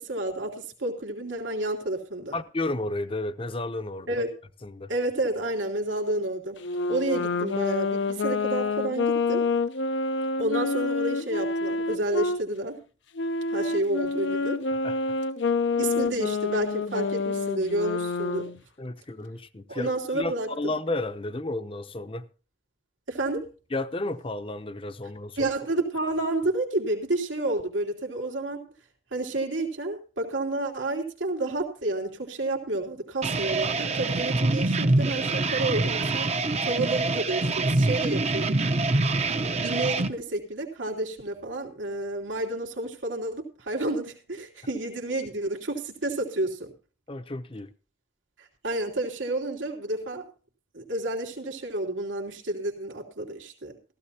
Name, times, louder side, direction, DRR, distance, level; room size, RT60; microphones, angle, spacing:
voice 1, 0.0-2.3 4.1-4.3 4.9-6.6 6.9-9.5 10.4-12.8 13.5-14.6 15.8-18.5 19.7-20.7 23.1-23.5 25.4-28.6 29.1-36.3 36.6-38.5 39.6-46.7 48.4-50.2 50.7-53.7, right 2 dB, 80° right, 2.8 m, -30 dB
voice 2, 2.3-4.1 4.6-4.9 14.8-15.0 18.8-22.3 23.7-25.5 47.1-47.7, left 2 dB, 30° left, 0.7 m, -32 dB
Wind instrument woodwind instrument, 6.6-12.4 13.1-18.6, left 3 dB, 70° left, 0.7 m, -28 dB
sound 1, 33.2-40.1, right 2 dB, 35° right, 0.8 m, -25 dB
15.5 x 14.5 x 2.8 m
head